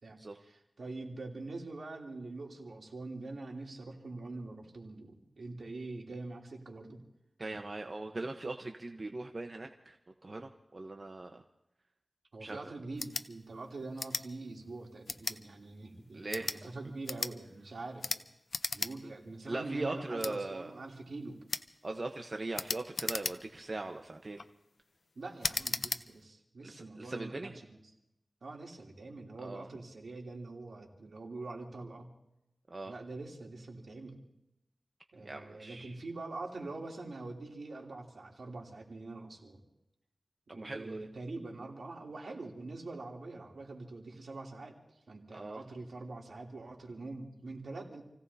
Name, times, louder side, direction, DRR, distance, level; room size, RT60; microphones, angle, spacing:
voice 1, 0.0-7.0 12.3-18.0 18.7-21.4 25.1-27.8 28.4-32.1 32.9-34.2 35.1-39.6 40.5-44.7 45.1-48.0, right 2 dB, 75° right, -1 dB, 3.1 m, -44 dB
voice 2, 7.4-10.0 10.2-11.4 12.4-12.6 16.1-16.5 19.5-20.7 21.8-24.4 26.6-27.6 29.4-29.7 32.7-32.9 35.2-35.9 40.5-41.1 45.3-45.6, right 2 dB, 45° right, 4 dB, 1.0 m, -40 dB
sound 1, 12.9-13.3 14.0-14.3 15.1-15.4 16.2-16.6 17.0-17.3 18.0-18.2 18.5-18.9 19.3-19.4 20.2-20.3 21.5-21.7 22.5-23.6 24.2-24.5 25.4-26.0, left 4 dB, 70° left, 0.7 m, -36 dB
29.0 x 17.0 x 2.8 m, 0.87 s
wide cardioid pair, 65°, 0 cm